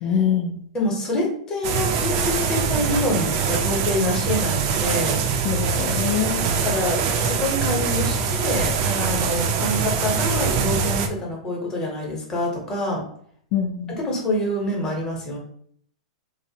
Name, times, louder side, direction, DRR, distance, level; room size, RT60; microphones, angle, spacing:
voice 1, 0.0-0.6 5.4-6.5 13.5-14.0, left 8 dB, 45° left, 2 dB, 0.3 m, -24 dB
voice 2, 0.7-5.2 6.5-13.0 14.0-15.4, left 1 dB, 15° left, -1 dB, 0.7 m, -26 dB
sound 1, 1.6-11.1, right 6 dB, 40° right, 0.3 m, -23 dB
2.5 x 2.0 x 2.7 m, 0.62 s
hypercardioid pair, 145°, 4 cm